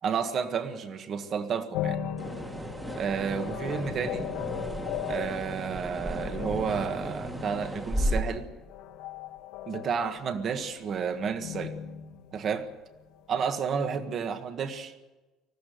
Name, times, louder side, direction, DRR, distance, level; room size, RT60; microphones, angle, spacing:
voice 1, 0.0-2.0 3.0-4.2 5.1-8.4 9.7-11.7 12.3-12.7 13.3-14.9, right 6 dB, 40° right, 9 dB, 1.6 m, -31 dB
sound 1, 1.7-13.2, left 10 dB, 80° left, 1.7 m, -38 dB
sound 2, 2.2-8.2, equal, 10° right, 1.7 m, -34 dB
20.5 x 14.5 x 9.3 m, 1.2 s
cardioid pair, 155°, 0 cm